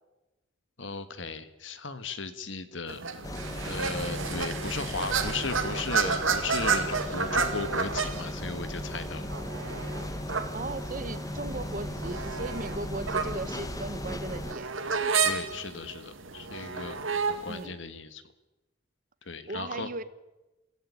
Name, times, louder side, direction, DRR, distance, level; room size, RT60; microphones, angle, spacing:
voice 1, 0.8-3.0 3.6-9.3 15.2-17.0 17.3-18.2 19.3-19.9, left 4 dB, 65° left, 11 dB, 1.7 m, -36 dB
sound 1, 2.9-17.6, right 5 dB, 80° right, 2.3 m, -32 dB
sound 2, 3.2-14.5, left 1 dB, 15° left, 1.3 m, -37 dB
sound 3, 3.3-14.3, right 1 dB, 60° right, 2.0 m, -49 dB
voice 2, 10.5-15.2 17.5-17.8 19.5-20.0, right 2 dB, 40° right, 14 dB, 1.1 m, -37 dB
27.0 x 15.5 x 8.6 m, 1.1 s
head